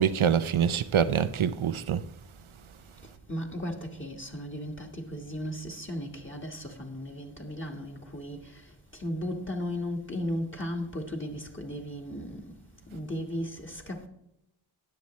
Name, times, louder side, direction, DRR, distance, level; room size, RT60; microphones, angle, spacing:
voice 1, 0.0-2.0, right 8 dB, 90° right, 0.7 m, -25 dB
voice 2, 3.3-12.5 12.9-14.1, equal, 25° left, 1.5 m, -36 dB
20.0 x 7.0 x 3.1 m
wide cardioid pair, 65°, 47 cm